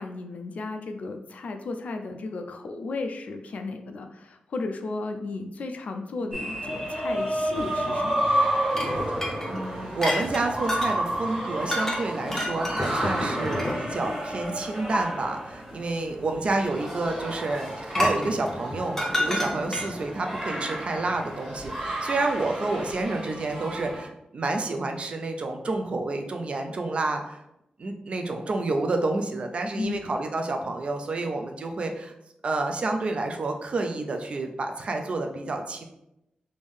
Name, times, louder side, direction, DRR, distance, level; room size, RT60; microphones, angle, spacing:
voice 1, 0.0-8.4 29.8-30.1, left 3 dB, 60° left, 5 dB, 0.4 m, -34 dB
sound 1, 6.3-24.0, right 1 dB, 20° right, 1.3 m, -31 dB
sound 2, 8.7-11.0 11.7-12.0 12.3-14.0 14.9-15.0 17.9-20.0, left 1 dB, 15° left, 0.6 m, -29 dB
voice 2, 9.4-27.4 27.8-32.1 32.4-35.8, right 2 dB, 40° right, 4 dB, 0.4 m, -29 dB
3.5 x 2.6 x 3.4 m, 0.85 s
wide cardioid pair, 175°, 3 cm